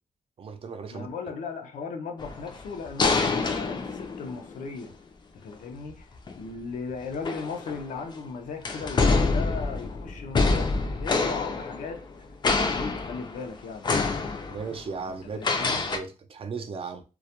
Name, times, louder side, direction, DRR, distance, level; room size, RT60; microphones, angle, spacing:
voice 1, 0.4-1.1 14.5-17.0, right 5 dB, 45° right, 0.4 m, -36 dB
voice 2, 0.9-5.0 5.3-12.0 12.6-13.9 15.3-15.8, left 5 dB, 85° left, 0.5 m, -37 dB
sound 1, 2.2-4.7 6.2-6.4 7.1-8.1 8.7-12.2 12.4-13.5 13.8-14.8 15.4-16.0, left 3 dB, 35° left, 0.4 m, -26 dB
2.2 x 2.1 x 2.8 m
cardioid pair, 100°, 13 cm